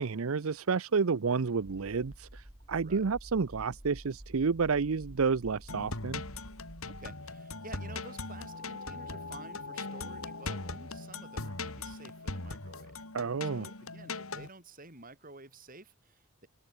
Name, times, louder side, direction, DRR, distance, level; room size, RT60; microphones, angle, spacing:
voice 1, 0.0-6.2 13.1-13.7, right 5 dB, 80° right, 0.6 m, -30 dB
sound 1, 1.6-7.1, equal, 20° right, 2.3 m, -50 dB
sound 2, 5.7-14.5, left 3 dB, 80° left, 3.6 m, -40 dB
voice 2, 6.8-13.0 13.4-16.5, right 3 dB, 40° right, 7.7 m, -51 dB
head